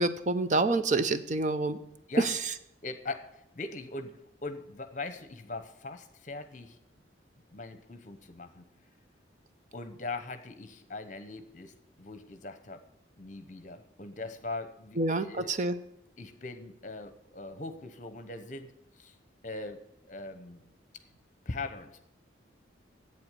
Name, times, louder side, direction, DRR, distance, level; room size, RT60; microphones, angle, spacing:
voice 1, 0.0-1.8 2.2-2.4 15.0-15.7, right 2 dB, 40° right, 11 dB, 0.6 m, -27 dB
voice 2, 2.8-6.8 7.5-8.6 9.7-12.8 13.2-15.5 16.2-19.1 19.4-19.8 20.1-20.6 21.4-22.0, left 3 dB, 40° left, 10 dB, 1.0 m, -41 dB
8.5 x 7.9 x 9.1 m, 0.78 s
head